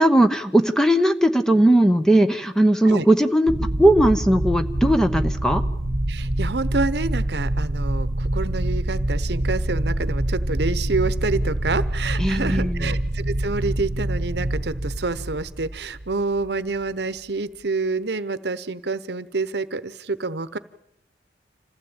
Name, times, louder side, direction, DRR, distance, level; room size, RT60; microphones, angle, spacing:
voice 1, 0.0-5.6 12.2-12.9, right 1 dB, 5° left, 8 dB, 0.9 m, -18 dB
sound 1, 3.5-16.5, right 1 dB, 40° right, 1.3 m, -25 dB
voice 2, 6.1-20.6, right 3 dB, 65° right, 15 dB, 1.0 m, -27 dB
26.5 x 15.5 x 8.8 m, 0.79 s
head